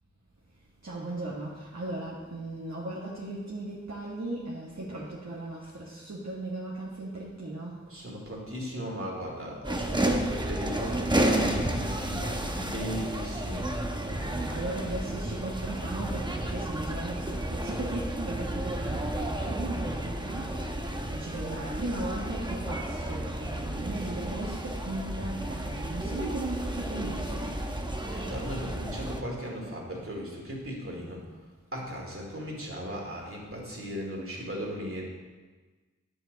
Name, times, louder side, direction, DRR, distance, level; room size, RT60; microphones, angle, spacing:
voice 1, 0.8-7.8 14.1-27.7, right 2 dB, 65° right, -7 dB, 1.6 m, -37 dB
voice 2, 7.9-13.7 28.1-31.2 31.7-35.0, equal, 50° right, -2 dB, 2.7 m, -37 dB
sound 1, 9.6-29.2, right 1 dB, 15° right, 1.0 m, -32 dB
10.0 x 7.8 x 4.1 m, 1.3 s
wide cardioid pair, 50°, 29 cm